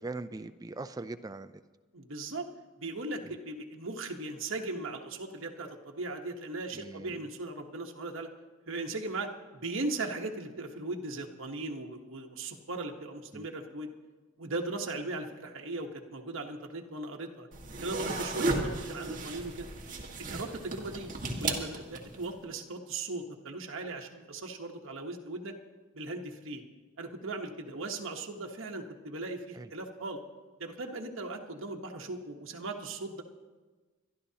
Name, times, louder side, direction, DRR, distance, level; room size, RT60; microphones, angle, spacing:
voice 1, 0.0-1.6 3.2-3.4 6.7-7.2 13.3-13.5 29.6-29.7, right 3 dB, 20° right, 10 dB, 0.4 m, -41 dB
voice 2, 1.9-2.5 2.8-8.3 8.7-13.9 14.4-17.5 17.8-19.7 20.2-21.1 21.4-25.6 25.9-26.6 27.0-30.2 30.6-33.2, right 2 dB, 75° right, 2 dB, 1.1 m, -38 dB
sound 1, 17.5-22.3, right 2 dB, 40° right, 1.6 m, -34 dB
25.0 x 11.5 x 2.8 m, 1.3 s
head